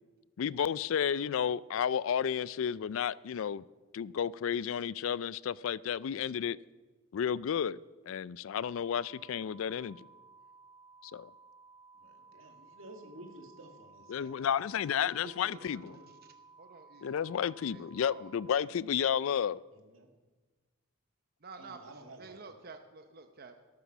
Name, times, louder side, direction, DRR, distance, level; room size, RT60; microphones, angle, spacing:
voice 1, 0.4-3.6 3.9-6.6 7.1-7.8 8.1-10.1 11.0-11.3 14.1-15.9 17.0-19.6, left 8 dB, 70° left, 0.3 m, -32 dB
sound 1, 8.6-18.6, right 4 dB, 20° right, 1.0 m, -58 dB
voice 2, 11.9-14.6 15.0-16.1 19.8-20.1 21.6-22.6, right 1 dB, 70° right, 2.2 m, -52 dB
voice 3, 15.4-15.9 16.6-17.3 17.7-18.2 21.4-21.8 22.2-23.5, right 4 dB, 45° right, 0.8 m, -51 dB
13.0 x 12.5 x 6.0 m
head